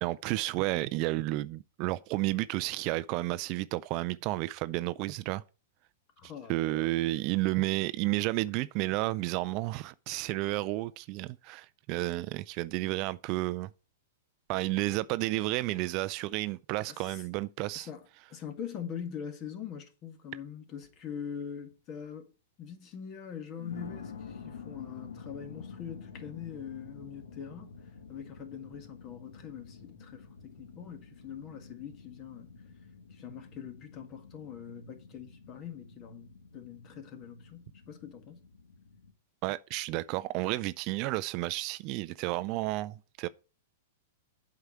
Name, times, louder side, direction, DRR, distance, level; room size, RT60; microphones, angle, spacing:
voice 1, 0.0-5.4 6.5-13.7 14.5-17.9 39.4-43.3, right 19 dB, 45° right, 0.4 m, -31 dB
voice 2, 6.2-6.9 16.9-17.2 17.7-22.3 22.6-27.8 28.1-32.5 33.1-38.4, left 8 dB, 35° left, 1.8 m, -43 dB
sound 1, 20.8-21.1 21.7-21.8 23.5-39.1, left 5 dB, 85° left, 1.4 m, -49 dB
8.0 x 4.8 x 6.8 m
hypercardioid pair, 130°, 0 cm